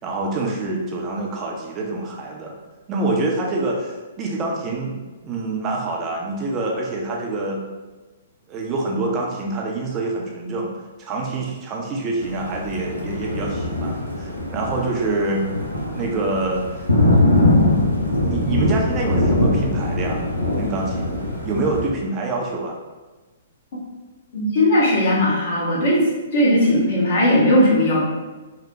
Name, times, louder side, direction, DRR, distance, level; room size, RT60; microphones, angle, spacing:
voice 1, 0.0-2.5 2.9-5.0 5.2-7.6 8.5-10.7 11.0-15.5 15.9-16.6 17.2-17.6 18.2-20.2 20.6-21.2 21.4-22.8, right 2 dB, 25° right, -1 dB, 0.5 m, -26 dB
Thunder, 12.2-21.9, left 1 dB, 85° left, 0.6 m, -22 dB
voice 2, 24.3-26.1 26.3-28.0, left 1 dB, 50° left, -5 dB, 1.0 m, -17 dB
3.1 x 2.1 x 2.7 m, 1.2 s
figure-of-eight pair, 115°, 0 cm